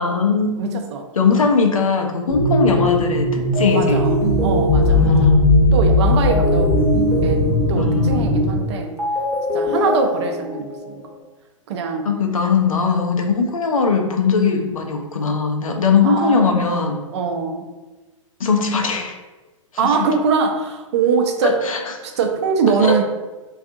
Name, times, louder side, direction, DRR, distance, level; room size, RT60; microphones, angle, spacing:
voice 1, 0.0-0.8 1.1-4.0 4.9-5.6 7.8-8.2 12.0-17.0 18.4-19.2 19.8-20.1 21.4-22.2 22.8-23.0, left 5 dB, 85° left, 3 dB, 0.5 m, -20 dB
voice 2, 0.6-1.1 3.7-4.2 4.4-5.3 5.7-6.7 7.2-8.9 9.5-11.1 11.7-12.1 16.0-17.7 19.8-21.6 22.0-23.0, right 5 dB, 55° right, 4 dB, 0.4 m, -22 dB
sound 1, 2.3-8.6, left 1 dB, 20° left, 0.8 m, -17 dB
sound 2, 3.5-11.2, left 1 dB, 15° right, 0.9 m, -25 dB
2.5 x 2.3 x 2.6 m, 1.2 s
hypercardioid pair, 115°, 17 cm